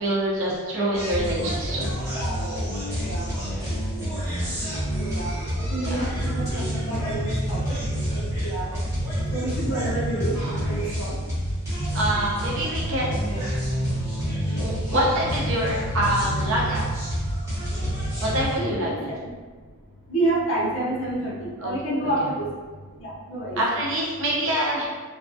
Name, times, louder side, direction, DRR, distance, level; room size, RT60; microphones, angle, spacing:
voice 1, 0.0-1.9 5.7-6.0 11.9-13.4 14.6-16.9 18.2-19.1 21.6-22.1 23.6-24.9, right 1 dB, 60° right, -4 dB, 0.7 m, -26 dB
sound 1, 0.9-18.6, equal, 15° right, 1.0 m, -28 dB
voice 2, 2.1-2.5 2.9-4.1 5.0-7.8 8.1-8.7 9.3-11.2 12.0-12.2 18.6-19.3 20.1-22.5 23.0-23.6, right 2 dB, 60° left, -4 dB, 0.7 m, -29 dB
3.4 x 2.2 x 2.6 m, 1.5 s
head